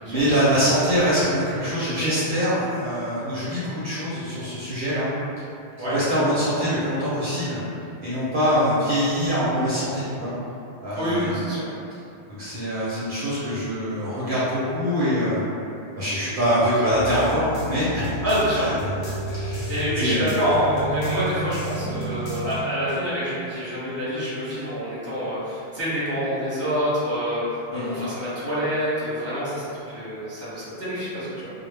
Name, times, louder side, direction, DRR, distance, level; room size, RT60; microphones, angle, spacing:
voice 1, 0.1-5.1 5.8-7.6 8.0-10.3 10.8-11.4 12.4-15.4 16.0-18.2 18.5-18.7 19.0-19.7 20.0-20.3 27.7-28.0, equal, 60° right, -10 dB, 0.7 m, -24 dB
voice 2, 11.0-11.7 18.2-18.7 19.7-27.4 27.7-31.5, equal, 15° right, -11 dB, 0.7 m, -26 dB
sound 1, 16.9-22.6, right 1 dB, 90° left, 1.0 m, -32 dB
2.1 x 2.0 x 3.1 m, 2.6 s
omnidirectional pair, 1.1 m